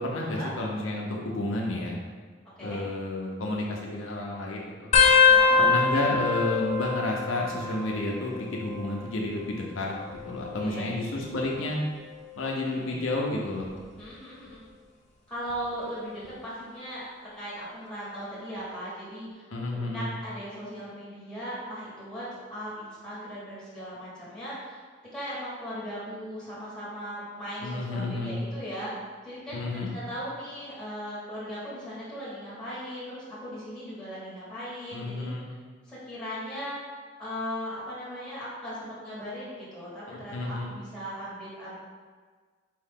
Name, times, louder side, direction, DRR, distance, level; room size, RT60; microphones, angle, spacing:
voice 1, 0.0-2.0 2.6-4.9 5.6-9.9 10.2-11.8 12.4-13.7 19.5-20.1 27.6-28.4 29.5-29.9 34.9-35.5 40.1-40.7, left 2 dB, 80° left, -2 dB, 0.6 m, -31 dB
sound 1, 4.9-8.1 8.4-9.0 10.0-11.5 12.1-12.4 13.6-14.0 15.5-15.6, left 5 dB, 35° left, 0.4 m, -24 dB
voice 2, 5.3-5.7 10.6-10.9 12.7-13.0 14.0-14.6 15.3-24.8 25.1-28.9 29.2-35.3 35.8-36.8 37.2-41.8, equal, 5° left, -10 dB, 1.5 m, -38 dB
4.6 x 2.8 x 3.6 m, 1.5 s
head